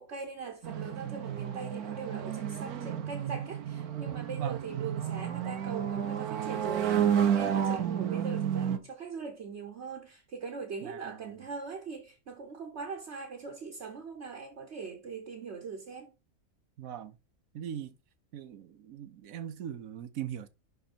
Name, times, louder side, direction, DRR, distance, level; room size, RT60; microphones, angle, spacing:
voice 1, 0.0-16.1, right 5 dB, 50° right, 1.3 m, -41 dB
sound 1, 0.6-8.8, right 9 dB, 85° right, 1.4 m, -31 dB
voice 2, 10.8-11.3 16.8-17.1 17.5-17.9 18.3-20.5, right 9 dB, 70° right, 1.2 m, -40 dB
11.0 x 3.9 x 4.4 m
omnidirectional pair, 1.5 m